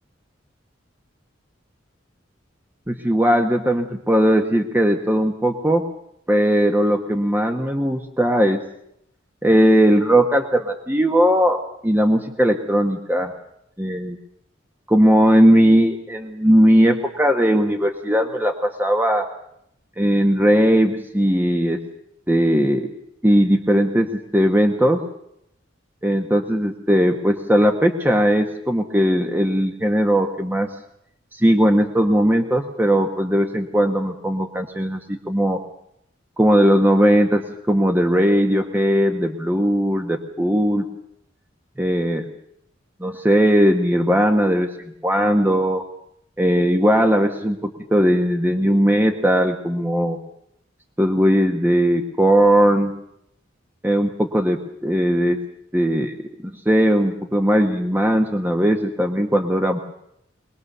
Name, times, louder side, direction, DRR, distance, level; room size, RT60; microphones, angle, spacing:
voice 1, 2.9-5.8 6.3-8.6 9.4-13.3 13.8-14.2 14.9-19.3 20.0-21.8 22.3-22.9 23.2-25.0 26.0-30.7 31.3-35.6 36.4-40.8 41.8-42.3 43.0-44.7 45.0-45.8 46.4-50.2 51.0-52.9 53.8-55.4 55.7-56.1 56.6-59.8, equal, 10° right, 4 dB, 1.3 m, -18 dB
23.5 x 20.0 x 6.8 m, 0.76 s
head